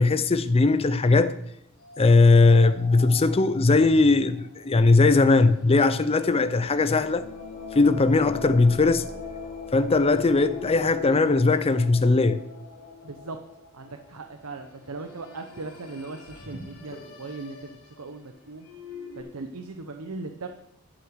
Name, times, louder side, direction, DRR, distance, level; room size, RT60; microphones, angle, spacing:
voice 1, 0.0-1.3 2.0-7.3 7.7-9.1 9.7-12.4, left 3 dB, 25° left, 0.5 m, -19 dB
sound 1, 1.8-12.9 14.4-19.2, left 2 dB, 80° left, 3.3 m, -46 dB
sound 2, 6.5-15.1, left 5 dB, 65° left, 3.0 m, -41 dB
voice 2, 13.0-13.4 13.7-18.7 19.1-20.5, right 3 dB, 80° right, 0.8 m, -38 dB
11.0 x 5.8 x 7.9 m
head